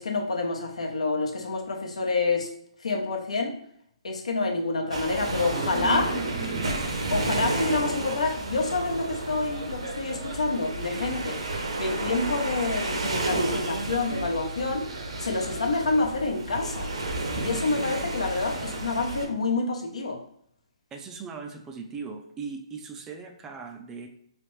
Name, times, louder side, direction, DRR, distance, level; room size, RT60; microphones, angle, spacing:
voice 1, 0.0-2.5 2.8-3.6 4.0-6.1 7.1-11.4 11.8-14.9 15.2-16.9 17.4-20.2, left 3 dB, 85° left, 3 dB, 0.7 m, -28 dB
sound 1, 4.9-19.3, right 2 dB, 75° right, 0.8 m, -31 dB
voice 2, 5.6-6.8 20.9-24.1, right 4 dB, 15° right, 4 dB, 0.3 m, -38 dB
3.3 x 3.0 x 3.1 m, 0.68 s
hypercardioid pair, 150°, 3 cm